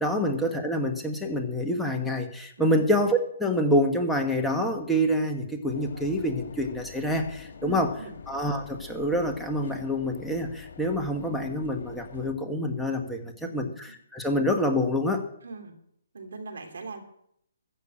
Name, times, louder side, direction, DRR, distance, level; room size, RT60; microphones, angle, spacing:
voice 1, 0.0-7.9 8.3-15.2, equal, ahead, 2 dB, 1.5 m, -27 dB
sound 1, 5.7-12.3, left 6 dB, 60° left, 2.5 m, -45 dB
voice 2, 7.6-8.1 13.4-13.7 15.4-15.7 16.1-17.0, right 3 dB, 75° right, 6 dB, 3.2 m, -40 dB
14.0 x 6.9 x 8.8 m, 0.68 s
hypercardioid pair, 140°, 0 cm